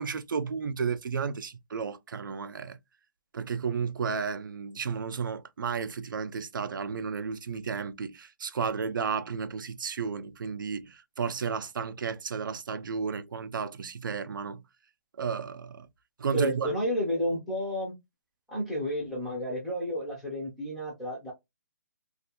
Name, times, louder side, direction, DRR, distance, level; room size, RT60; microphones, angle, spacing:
voice 1, 0.0-2.8 3.3-14.6 15.2-15.9 16.2-16.7, right 6 dB, 85° right, 0.4 m, -33 dB
voice 2, 16.3-17.9 18.5-21.3, equal, ahead, 0.3 m, -31 dB
2.4 x 2.3 x 2.8 m
hypercardioid pair, 175°, 11 cm